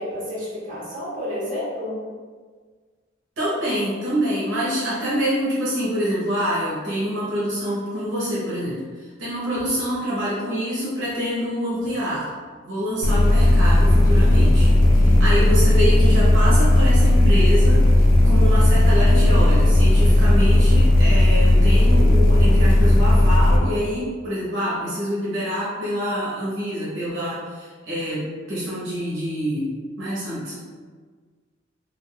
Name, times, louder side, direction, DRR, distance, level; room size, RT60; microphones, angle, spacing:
voice 1, 0.0-2.0 14.8-15.3, left 1 dB, 40° right, -9 dB, 1.0 m, -31 dB
voice 2, 3.4-12.3 12.6-29.7 30.0-30.5, equal, 70° right, -8 dB, 0.9 m, -26 dB
sound 1, 9.5-10.0 11.1-11.2 11.8-12.1 12.4-12.5 12.8-20.2, equal, 20° right, 0.3 m, -39 dB
sound 2, 13.0-23.6, left 1 dB, 90° left, 0.4 m, -15 dB
3.5 x 2.4 x 2.2 m, 1.5 s
head